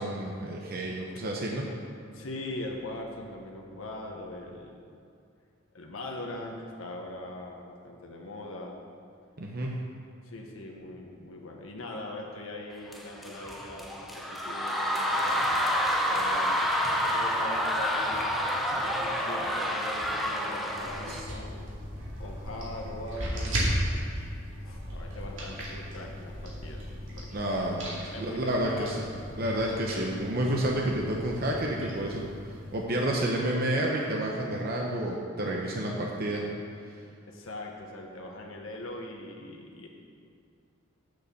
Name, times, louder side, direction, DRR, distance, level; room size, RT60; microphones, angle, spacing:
voice 1, 0.0-1.7 9.4-9.7 21.1-21.2 27.3-29.0 29.4-36.4, right 1 dB, 50° right, -1 dB, 0.9 m, -30 dB
voice 2, 2.1-4.7 5.7-8.8 10.2-15.5 16.1-18.5 18.9-21.8 22.2-24.0 24.6-27.5 28.1-29.0 37.3-39.9, left 1 dB, 80° left, 0 dB, 1.2 m, -41 dB
sound 1, 12.9-21.2, equal, ahead, 0.7 m, -28 dB
sound 2, 20.7-32.8, equal, 65° right, 2.5 m, -36 dB
8.0 x 6.8 x 6.9 m, 2.4 s
head